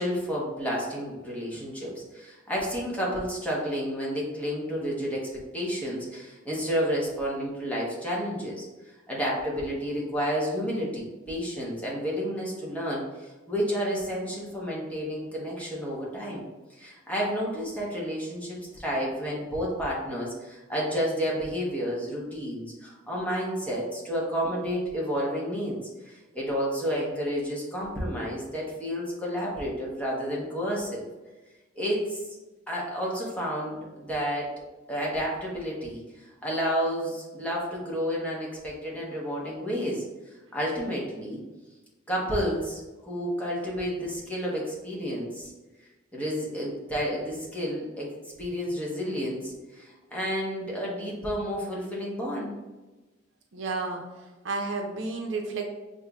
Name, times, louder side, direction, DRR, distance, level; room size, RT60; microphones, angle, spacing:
voice 1, 0.0-8.6 9.1-16.4 16.7-25.8 26.0-31.1 31.8-32.2 32.7-34.5 34.9-40.0 40.5-41.4 42.1-45.5 46.1-48.1 48.4-52.5, equal, 10° left, -5 dB, 1.0 m, -31 dB
voice 2, 53.5-54.0 54.4-55.7, right 3 dB, 80° right, 2 dB, 0.6 m, -31 dB
6.5 x 2.6 x 2.3 m, 1.2 s
head